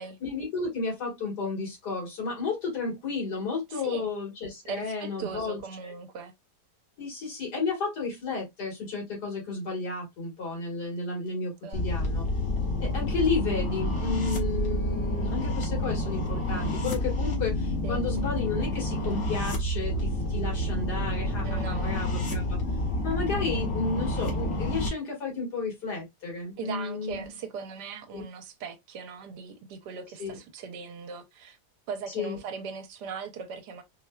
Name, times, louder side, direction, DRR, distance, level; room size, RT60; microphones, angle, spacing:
voice 1, 0.2-5.6 7.0-12.3 12.8-22.6 23.0-27.3 28.1-28.2 30.2-30.4 32.1-32.4, left 4 dB, 75° left, 2.3 m, -32 dB
voice 2, 3.7-4.1 4.6-6.3 11.6-11.8 17.8-18.0 21.4-22.0 26.6-31.6 31.9-33.8, right 5 dB, 80° right, 1.3 m, -39 dB
sound 1, 11.7-24.9, left 1 dB, 50° left, 1.2 m, -29 dB
4.2 x 2.2 x 2.3 m
omnidirectional pair, 1.8 m